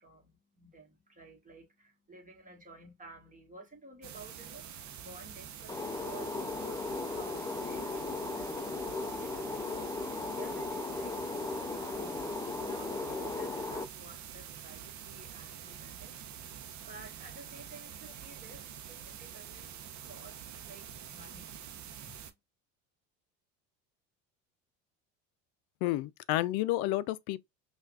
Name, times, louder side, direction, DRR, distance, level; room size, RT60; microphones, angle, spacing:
voice 1, 0.0-12.2 12.6-22.3, right 2 dB, 20° right, 1.5 m, -54 dB
sound 1, 4.0-22.3, right 9 dB, 45° right, 0.8 m, -46 dB
sound 2, 5.7-13.8, left 3 dB, 10° left, 0.4 m, -37 dB
voice 2, 25.8-27.4, left 16 dB, 70° left, 0.5 m, -31 dB
5.6 x 2.5 x 2.3 m
supercardioid pair, 100°, 39 cm